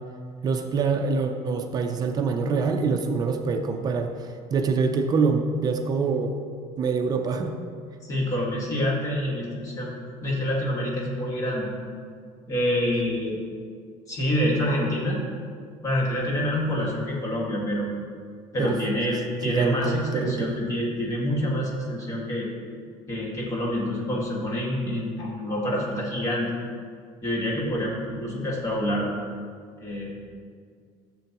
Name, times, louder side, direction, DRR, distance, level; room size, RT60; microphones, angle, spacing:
voice 1, 0.4-6.3 6.8-7.6 18.6-18.8 19.4-20.6, right 4 dB, 30° right, 4 dB, 0.5 m, -25 dB
voice 2, 8.0-9.9 10.2-11.7 12.5-13.4 14.1-15.2 15.8-17.9 18.5-22.5 23.1-26.5 27.2-29.1 29.8-30.2, left 1 dB, 25° left, -4 dB, 1.9 m, -27 dB
12.5 x 7.6 x 2.9 m, 2.1 s
cardioid pair, 165°, 13 cm